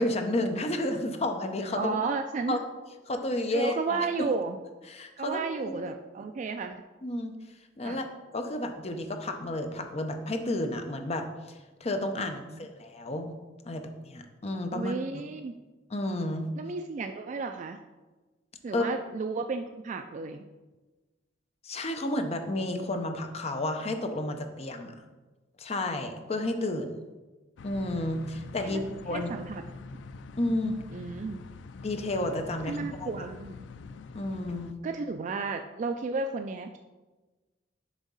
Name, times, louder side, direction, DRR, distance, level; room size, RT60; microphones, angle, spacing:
voice 1, 0.0-2.0 2.5-2.6 3.1-4.3 4.9-5.8 7.0-7.3 7.8-8.1 8.3-13.3 13.6-14.9 15.9-16.5 18.7-18.8 21.6-24.9 25.6-27.0 27.6-29.3 30.4-30.7 31.8-33.3 34.1-34.7, left 1 dB, 35° left, 6 dB, 0.7 m, -31 dB
voice 2, 1.7-2.6 3.5-4.6 5.2-6.8 7.8-8.0 12.5-12.6 14.7-15.6 16.6-17.8 18.6-20.4 28.6-28.8 29.1-29.6 30.9-31.4 32.7-33.6 34.8-36.8, right 4 dB, 45° right, 6 dB, 0.3 m, -33 dB
sound 1, 27.6-34.7, left 3 dB, 85° left, 0.3 m, -45 dB
7.3 x 3.6 x 5.5 m, 1.2 s
head